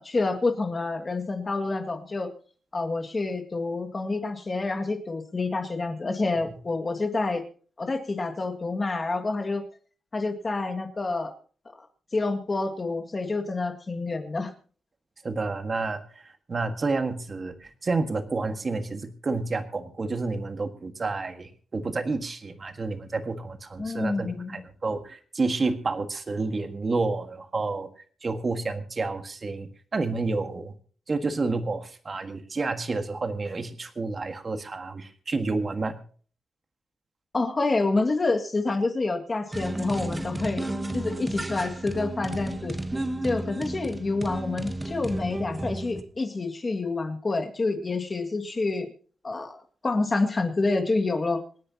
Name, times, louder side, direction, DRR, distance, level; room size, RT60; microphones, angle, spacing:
voice 1, 0.0-2.3 2.7-7.4 7.8-9.6 10.1-11.3 12.1-14.5 23.8-24.6 37.3-40.7 40.9-42.7 43.2-48.9 49.2-49.6 49.8-51.4, left 3 dB, 30° left, 4 dB, 2.0 m, -28 dB
voice 2, 15.2-27.9 28.2-30.7 31.1-36.0, right 3 dB, 35° right, 7 dB, 1.6 m, -30 dB
sound 1, 39.5-46.0, right 1 dB, 10° right, 1.2 m, -33 dB
27.0 x 10.0 x 2.9 m, 0.42 s
wide cardioid pair, 145°, 0 cm